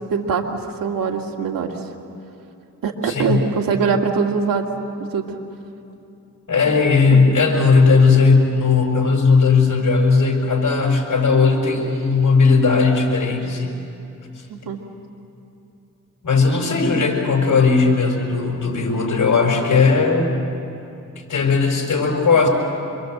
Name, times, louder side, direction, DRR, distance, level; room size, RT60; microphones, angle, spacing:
voice 1, 0.1-1.7 2.8-5.3 7.1-7.3 14.5-14.8, right 5 dB, 90° right, 2 dB, 2.1 m, -23 dB
voice 2, 3.1-3.4 6.5-13.7 16.2-20.4 21.3-22.5, left 4 dB, 60° left, 2 dB, 5.3 m, -17 dB
27.0 x 23.0 x 7.8 m, 2.8 s
cardioid pair, 70°, 33 cm